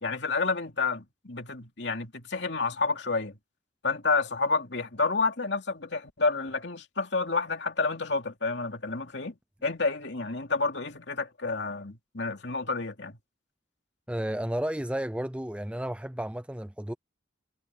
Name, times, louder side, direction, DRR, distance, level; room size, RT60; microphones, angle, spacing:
voice 1, 0.0-3.4 3.8-13.2, left 3 dB, 60° left, 2.9 m, -29 dB
voice 2, 14.1-16.9, right 1 dB, 5° right, 0.5 m, -32 dB
head